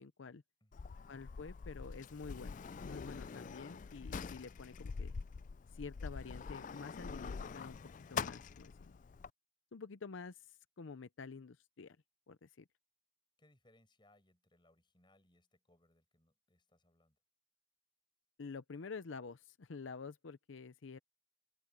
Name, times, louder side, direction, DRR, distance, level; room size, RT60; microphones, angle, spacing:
voice 1, 0.0-0.4 1.1-5.1 5.7-7.8 8.1-9.0 9.7-12.0 12.3-12.6 18.4-21.0, left 4 dB, 85° left, 0.6 m, -49 dB
voice 2, 0.6-1.0 13.4-17.2, left 1 dB, 25° left, 6.1 m, -71 dB
Sliding door, 0.7-9.3, left 5 dB, 40° left, 0.3 m, -45 dB
open air
head